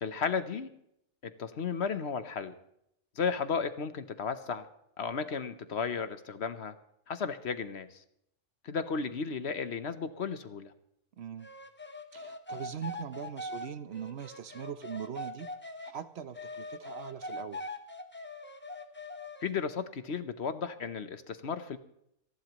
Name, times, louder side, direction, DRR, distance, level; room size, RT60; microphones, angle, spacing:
voice 1, 0.0-0.7 1.2-2.5 3.2-4.7 5.0-6.7 7.1-8.0 8.6-10.7 19.4-21.8, left 5 dB, 60° left, 11 dB, 1.1 m, -34 dB
voice 2, 11.2-11.5 12.1-15.5 15.8-17.7, right 8 dB, 60° right, 12 dB, 0.9 m, -41 dB
sound 1, 11.4-15.9 16.3-19.5, left 1 dB, 10° left, 0.9 m, -42 dB
26.5 x 11.5 x 3.0 m, 0.76 s
omnidirectional pair, 1.4 m